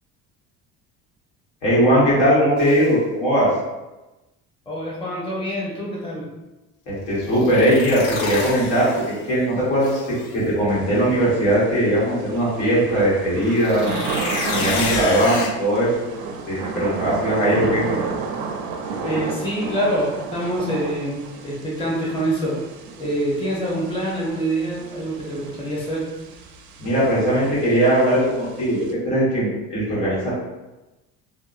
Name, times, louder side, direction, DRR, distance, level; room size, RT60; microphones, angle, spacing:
voice 1, 1.6-3.5 6.9-10.0 10.3-13.9 14.5-16.1 16.5-17.8 26.8-30.3, equal, 90° left, -8 dB, 1.4 m, -19 dB
sound 1, 2.6-2.9 7.3-9.4 9.8-10.4 13.5-15.5, left 3 dB, 75° left, 0.5 m, -29 dB
voice 2, 4.7-6.3 19.0-22.6 23.0-26.1, right 1 dB, 15° left, -5 dB, 0.7 m, -25 dB
Thunder / Rain, 10.7-28.9, right 4 dB, 70° right, 0.5 m, -32 dB
2.6 x 2.2 x 2.4 m, 1.1 s
cardioid pair, 115°, 31 cm